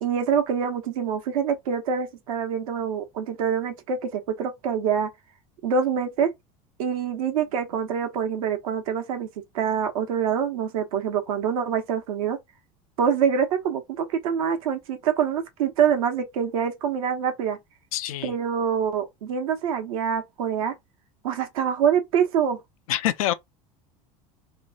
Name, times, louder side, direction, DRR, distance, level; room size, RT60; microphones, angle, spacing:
voice 1, 0.0-5.1 5.6-6.3 6.8-9.3 9.5-12.4 13.0-17.6 18.2-20.7 21.2-22.6, right 7 dB, 80° right, 1.1 m, -25 dB
voice 2, 17.9-18.3 22.9-23.3, left 13 dB, 85° left, 0.4 m, -25 dB
3.1 x 2.4 x 3.9 m
hypercardioid pair, 90°, 18 cm